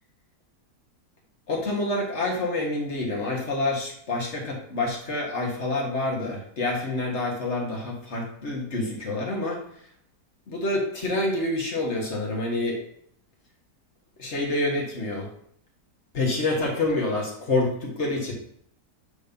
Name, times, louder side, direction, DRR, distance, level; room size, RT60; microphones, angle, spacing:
voice 1, 1.5-9.6 10.5-12.8 14.2-15.3 16.1-18.3, left 2 dB, 45° left, -1 dB, 1.6 m, -27 dB
8.2 x 3.1 x 5.2 m, 0.65 s
omnidirectional pair, 1.8 m